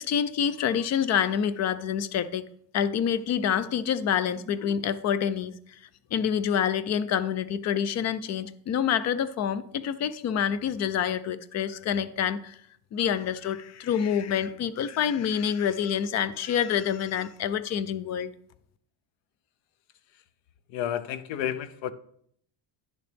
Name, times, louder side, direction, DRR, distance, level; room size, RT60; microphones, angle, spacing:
voice 1, 0.0-2.4 2.7-5.5 6.1-12.6 12.9-18.3, left 8 dB, 40° left, 0.4 m, -27 dB
voice 2, 20.7-21.9, left 10 dB, 85° left, 0.8 m, -31 dB
10.0 x 6.8 x 3.4 m
cardioid pair, 165°, 44 cm